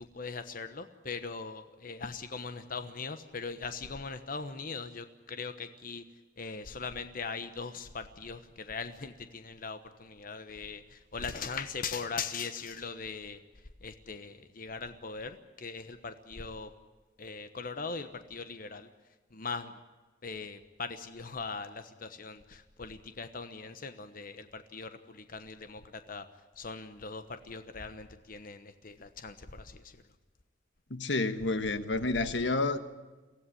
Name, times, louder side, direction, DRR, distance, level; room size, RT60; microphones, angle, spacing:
voice 1, 0.0-6.0 6.4-13.4 13.8-16.7 17.2-18.9 19.3-19.8 20.2-26.3 26.6-30.0, left 4 dB, 50° left, 1.2 m, -40 dB
voice 2, 30.9-32.8, left 3 dB, 75° left, 1.4 m, -29 dB
23.5 x 16.5 x 10.0 m
head